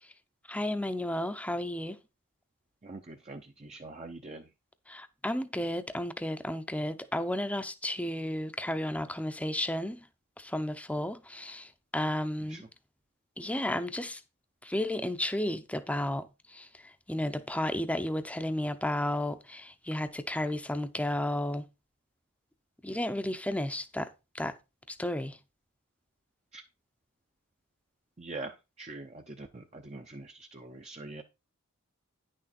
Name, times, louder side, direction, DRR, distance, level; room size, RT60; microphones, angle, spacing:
voice 1, 0.5-2.0 4.9-10.0 10.4-12.6 13.4-14.2 14.6-16.7 17.1-21.6 22.8-24.1 24.3-24.5 24.9-25.4, left 1 dB, 5° left, 0.7 m, -33 dB
voice 2, 2.8-4.4 12.5-12.6 26.5-26.6 28.2-31.2, right 2 dB, 30° right, 0.7 m, -44 dB
10.0 x 6.4 x 4.3 m
head